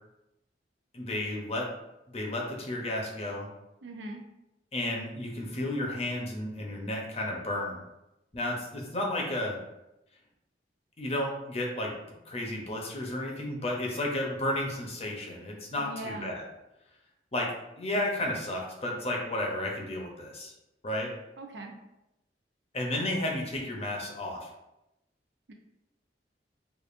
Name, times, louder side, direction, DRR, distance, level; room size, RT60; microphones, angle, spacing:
voice 1, 0.9-1.7 2.1-3.5 4.7-7.8 8.3-9.6 11.0-11.9 12.3-16.5 17.3-17.5 17.8-20.5 20.8-21.1 22.7-24.5, left 1 dB, 35° left, 0 dB, 0.7 m, -32 dB
voice 2, 3.8-4.2 15.8-16.3 21.4-21.8 25.5-25.6, right 1 dB, 90° right, 3 dB, 0.6 m, -40 dB
4.9 x 2.4 x 2.5 m, 0.90 s
head